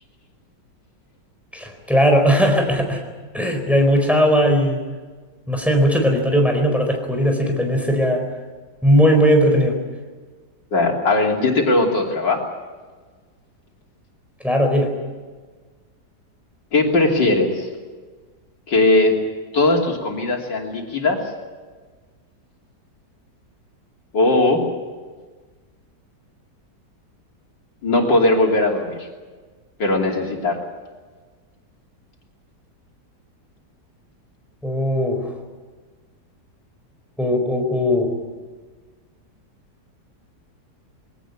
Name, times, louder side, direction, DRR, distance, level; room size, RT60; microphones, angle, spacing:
voice 1, 1.5-3.0 3.3-4.8 5.5-8.2 8.8-9.8 14.4-14.9 34.6-35.3 37.2-38.1, equal, ahead, 2 dB, 4.4 m, -18 dB
voice 2, 10.7-12.4 16.7-17.7 18.7-19.2 19.5-21.2 24.1-24.6 27.8-29.1 29.8-30.6, left 2 dB, 90° left, 0 dB, 3.8 m, -19 dB
22.0 x 18.0 x 9.8 m, 1.4 s
omnidirectional pair, 1.9 m